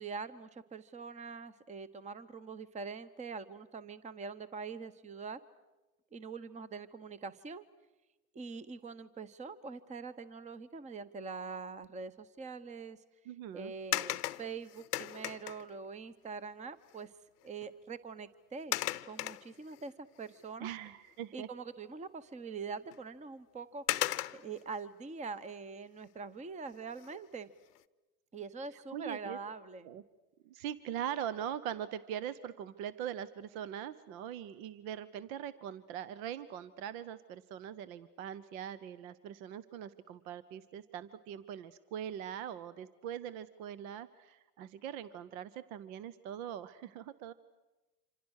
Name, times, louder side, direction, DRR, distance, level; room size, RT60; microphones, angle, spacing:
voice 1, 0.0-5.4 6.1-7.6 8.3-13.0 13.5-17.1 17.4-18.8 19.0-20.7 21.3-24.0 24.3-27.5 28.3-29.9, right 4 dB, 15° right, 16 dB, 0.9 m, -44 dB
voice 2, 13.3-13.7 20.6-21.5 28.7-29.4 29.8-30.0 30.4-47.3, right 9 dB, 65° right, 17 dB, 1.0 m, -42 dB
sound 1, 13.9-15.8 17.0-17.1 17.4-17.7 18.7-19.9 20.4-20.5 22.9-23.0 23.9-24.6 26.9-27.3 27.8-27.9, left 14 dB, 85° left, 0.8 m, -36 dB
27.0 x 26.5 x 6.5 m, 1.1 s
hypercardioid pair, 100°, 45 cm